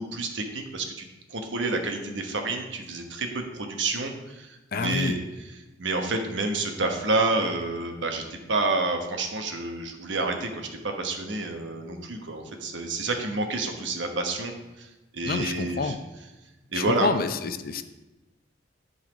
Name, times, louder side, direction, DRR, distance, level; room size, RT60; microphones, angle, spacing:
voice 1, 0.0-5.2 5.8-15.9 16.7-17.1, right 2 dB, 75° right, 4 dB, 1.1 m, -29 dB
voice 2, 4.7-5.2 15.3-16.0 16.7-17.8, left 4 dB, 50° left, 10 dB, 0.5 m, -28 dB
10.5 x 4.1 x 5.1 m, 1.0 s
head